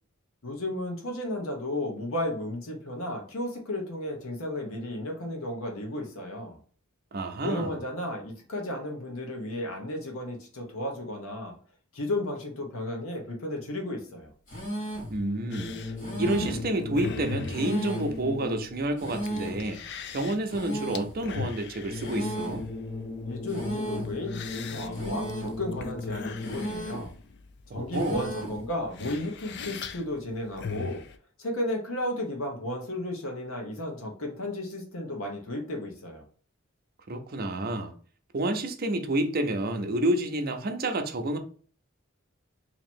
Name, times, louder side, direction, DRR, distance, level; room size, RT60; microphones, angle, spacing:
voice 1, 0.4-6.6 7.4-11.5 11.9-14.3 23.2-27.1 27.7-31.0 31.4-36.2, left 1 dB, 80° left, 1.1 m, -33 dB
voice 2, 7.1-7.8 15.1-15.8 16.2-19.8 20.1-22.7 27.7-28.3 37.1-37.9 38.3-41.4, right 1 dB, 45° right, 0.6 m, -29 dB
sound 1, 14.5-15.2 16.0-16.7 17.5-18.2 19.0-19.7 20.5-21.2 22.0-22.7 23.5-24.2 24.9-25.6 26.4-27.1 27.9-28.6, right 1 dB, 40° left, 1.4 m, -35 dB
sound 2, 15.5-31.2, left 5 dB, 55° left, 0.4 m, -41 dB
sound 3, 15.5-18.9 21.9-26.9, left 3 dB, 5° left, 0.6 m, -37 dB
2.9 x 2.8 x 4.3 m
head